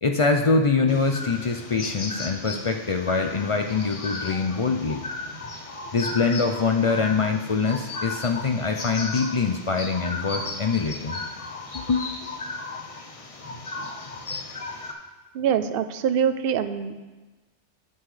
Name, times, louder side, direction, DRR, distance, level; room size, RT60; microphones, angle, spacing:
voice 1, 0.0-5.1 5.9-11.2 11.7-12.1, left 4 dB, 50° left, 4 dB, 0.4 m, -24 dB
sound 1, 0.9-14.9, left 3 dB, 35° left, 0.7 m, -35 dB
voice 2, 15.3-17.0, right 8 dB, 60° right, 9 dB, 0.7 m, -24 dB
10.5 x 9.5 x 3.2 m, 1.2 s
omnidirectional pair, 1.2 m